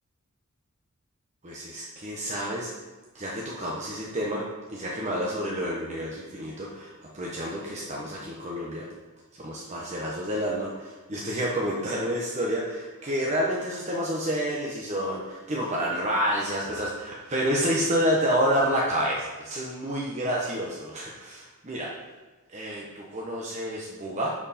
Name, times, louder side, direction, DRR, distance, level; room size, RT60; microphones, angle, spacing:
voice 1, 1.4-2.7 3.1-8.9 9.4-21.9 22.5-24.3, equal, 35° right, -4 dB, 1.1 m, -29 dB
10.5 x 4.9 x 4.3 m, 1.3 s
head